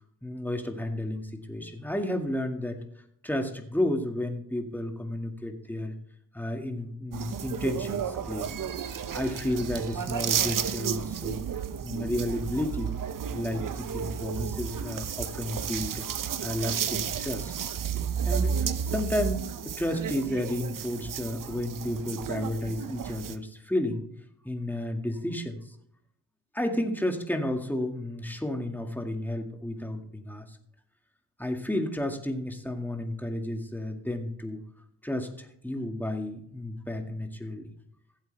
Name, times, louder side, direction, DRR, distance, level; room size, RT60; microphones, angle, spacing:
voice 1, 0.2-2.8 3.2-5.9 6.3-8.5 9.1-11.4 11.8-12.9 13.3-16.1 16.4-17.5 18.2-24.1 24.4-25.7 26.5-30.6 31.4-34.6 35.0-37.7, left 1 dB, 5° left, 4 dB, 2.1 m, -32 dB
sound 1, 7.1-23.4, right 7 dB, 45° right, 0.8 m, -32 dB
15.0 x 8.3 x 3.4 m, 0.69 s
cardioid pair, 80°, 46 cm